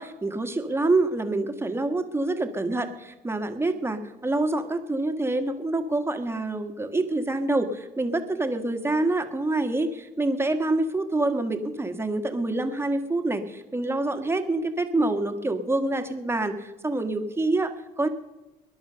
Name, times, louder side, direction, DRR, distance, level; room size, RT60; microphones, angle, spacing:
voice 1, 0.0-18.1, right 2 dB, 15° right, 7 dB, 1.6 m, -26 dB
19.0 x 11.0 x 6.8 m, 1.0 s
cardioid pair, 110°, 17 cm